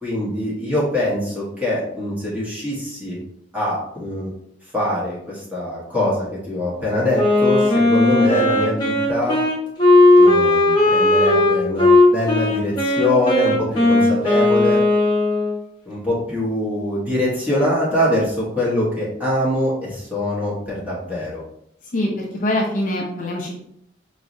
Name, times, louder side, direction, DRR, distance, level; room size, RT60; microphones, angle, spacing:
voice 1, 0.0-3.2 3.5-4.3 4.7-9.4 10.2-14.8 15.8-21.4, left 1 dB, 10° right, -7 dB, 1.3 m, -23 dB
Wind instrument woodwind instrument, 7.1-15.6, left 2 dB, 25° left, 1.1 m, -16 dB
voice 2, 21.9-23.6, left 1 dB, 45° left, -2 dB, 0.6 m, -23 dB
4.6 x 3.1 x 2.6 m, 0.74 s
head